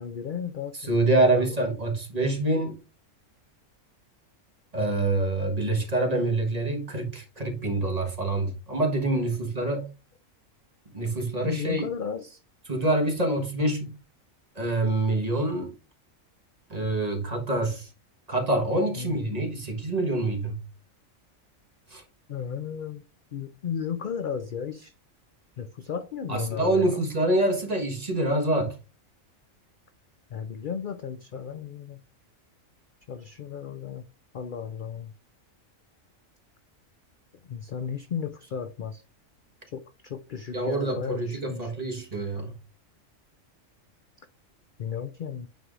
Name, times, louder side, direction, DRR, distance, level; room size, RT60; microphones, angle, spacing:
voice 1, 0.0-1.7 11.4-12.4 19.0-19.4 22.3-23.0 23.3-24.9 25.6-27.1 30.3-32.0 33.1-34.0 34.3-35.1 37.4-39.0 39.7-41.7 44.8-45.5, left 7 dB, 55° left, 0.5 m, -34 dB
voice 2, 0.8-2.8 4.7-9.9 10.9-11.9 12.7-14.0 14.5-15.7 16.7-17.9 18.3-20.6 21.9-22.0 26.3-28.7 40.5-42.5, right 2 dB, 30° right, 1.4 m, -26 dB
9.2 x 4.7 x 2.5 m
omnidirectional pair, 1.4 m